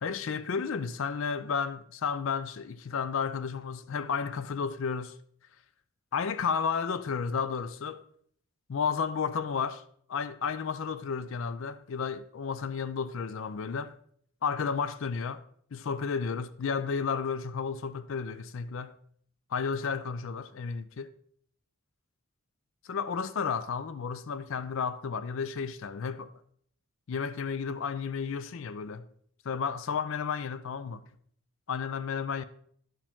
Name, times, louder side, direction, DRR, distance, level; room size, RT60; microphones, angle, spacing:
voice 1, 0.0-5.2 6.1-8.0 8.7-9.8 10.1-14.0 14.4-15.4 15.7-18.9 19.5-21.1 22.8-26.3 27.1-29.1 29.4-31.1 31.7-32.4, left 6 dB, 65° left, 0.4 m, -32 dB
12.0 x 5.0 x 3.6 m
head